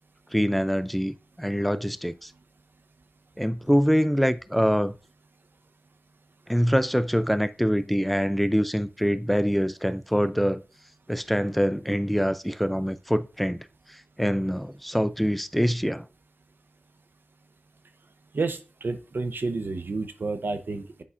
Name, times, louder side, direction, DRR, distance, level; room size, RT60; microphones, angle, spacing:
voice 1, 0.3-2.3 3.4-4.9 6.5-10.6 11.1-13.6 13.9-16.1, equal, ahead, 0.4 m, -24 dB
voice 2, 18.3-21.0, right 3 dB, 80° right, 0.7 m, -30 dB
8.2 x 5.4 x 2.4 m
cardioid pair, 45°, 4 cm